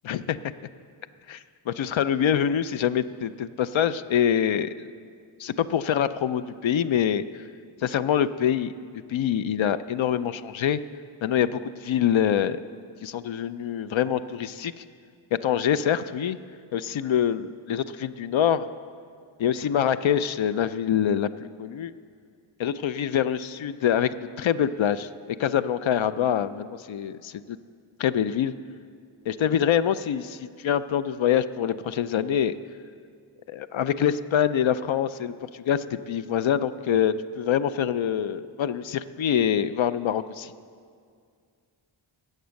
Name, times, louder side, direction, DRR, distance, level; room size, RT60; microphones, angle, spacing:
voice 1, 0.0-0.4 1.3-4.9 5.4-7.2 7.8-8.7 9.1-10.8 11.2-12.6 13.0-14.8 15.3-16.4 16.7-18.7 19.4-21.9 22.6-25.1 25.4-27.6 28.0-28.5 29.3-32.5 33.5-40.5, left 9 dB, 70° left, 13 dB, 0.5 m, -25 dB
14.0 x 8.0 x 6.4 m, 2.2 s
wide cardioid pair, 105°, 49 cm